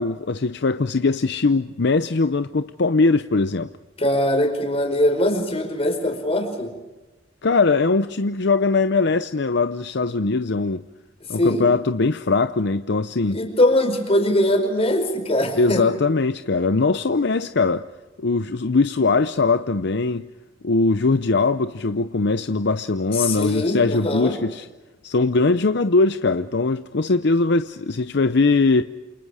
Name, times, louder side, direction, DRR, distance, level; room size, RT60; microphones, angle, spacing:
voice 1, 0.0-3.7 7.4-10.8 11.3-13.4 15.5-17.9 18.2-20.3 20.6-24.7 25.0-28.8, left 3 dB, 65° left, 0.7 m, -21 dB
voice 2, 4.0-6.7 11.4-11.7 13.2-15.8 23.1-24.4, left 1 dB, 35° left, 4.9 m, -21 dB
28.5 x 28.5 x 5.0 m
head